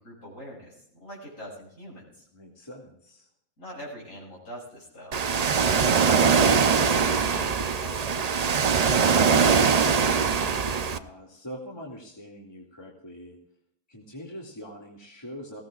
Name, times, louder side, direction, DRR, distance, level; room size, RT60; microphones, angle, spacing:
voice 1, 0.0-2.3 3.6-5.2 5.5-10.3, equal, 70° left, -4 dB, 7.0 m, -44 dB
voice 2, 2.3-3.3 10.6-13.4 13.9-15.6, equal, 20° left, -3 dB, 2.4 m, -43 dB
Ocean, 5.1-11.0, right 6 dB, 45° right, 0.5 m, -22 dB
19.5 x 17.0 x 2.4 m, 0.74 s
omnidirectional pair, 1.4 m